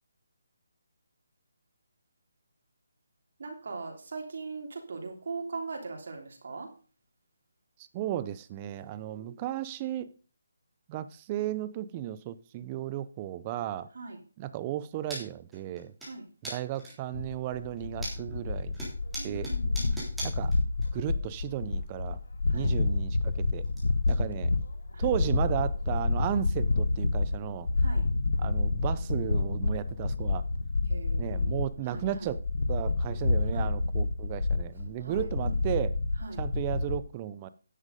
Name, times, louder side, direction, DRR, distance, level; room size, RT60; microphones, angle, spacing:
voice 1, 3.4-6.7 9.1-9.4 13.9-14.2 16.1-16.2 19.2-20.0 22.5-22.7 24.9-25.1 27.8-28.1 30.9-32.3 33.5-33.7 35.0-35.8 36.2-36.4, right 4 dB, 55° right, 2 dB, 3.3 m, -41 dB
voice 2, 7.9-10.1 10.9-13.9 14.4-15.9 16.4-18.8 19.2-19.5 20.2-20.5 20.9-22.2 22.5-23.6 24.1-24.5 25.0-27.7 28.4-30.4 31.2-32.4 32.7-35.9 36.4-37.5, right 12 dB, 20° right, 14 dB, 0.5 m, -34 dB
sound 1, 15.1-15.2 15.5-16.1 16.4-17.1 17.6-18.4 18.7-20.9 21.1-21.2 22.5-22.6 22.9-23.8 24.0-24.2 24.6-24.7 25.1-25.2 25.8-25.9 27.1-27.2, right 1 dB, ahead, 3.5 m, -40 dB
sound 2, 17.1-37.0, left 3 dB, 80° left, 1.3 m, -29 dB
10.0 x 7.3 x 5.2 m, 0.39 s
hypercardioid pair, 170°, 0 cm